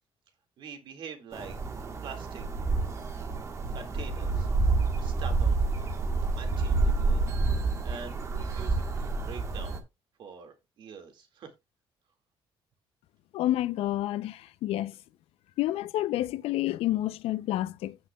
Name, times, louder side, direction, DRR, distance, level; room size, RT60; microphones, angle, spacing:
voice 1, 0.6-2.5 3.7-4.5 5.0-5.7 6.4-7.2 7.8-9.9 10.2-11.5, right 6 dB, 55° right, 2.1 m, -45 dB
sound 1, 1.3-9.8, right 3 dB, 30° right, 1.3 m, -28 dB
voice 2, 13.3-15.0 15.6-18.0, left 14 dB, 85° left, 0.6 m, -29 dB
15.5 x 5.6 x 2.3 m
cardioid pair, 170°, 10 cm